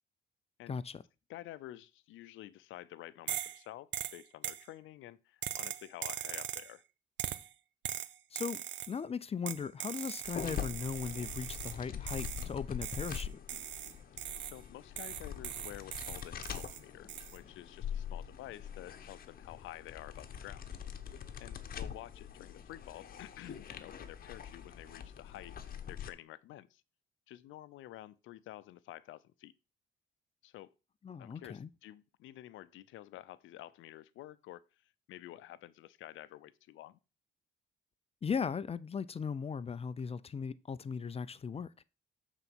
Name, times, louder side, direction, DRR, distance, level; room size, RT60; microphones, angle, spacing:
voice 1, 0.7-1.0 8.3-13.4 31.0-31.7 38.2-41.7, left 6 dB, 30° left, 0.5 m, -38 dB
voice 2, 1.3-6.8 14.4-20.6 21.4-25.5 25.9-26.8 27.3-29.5 30.4-30.7 31.2-34.6 35.1-37.0, left 14 dB, 85° left, 0.5 m, -50 dB
sound 1, 3.3-3.6 3.9-4.7 5.4-6.7 7.2-7.5 7.8-9.0 9.5-11.8 12.1-12.5 12.8-14.6 15.0-16.8 17.1-17.4, right 11 dB, 65° right, 0.6 m, -40 dB
sound 2, 10.2-26.1, left 8 dB, 50° left, 1.0 m, -44 dB
7.8 x 4.0 x 6.1 m
cardioid pair, 90°, 20 cm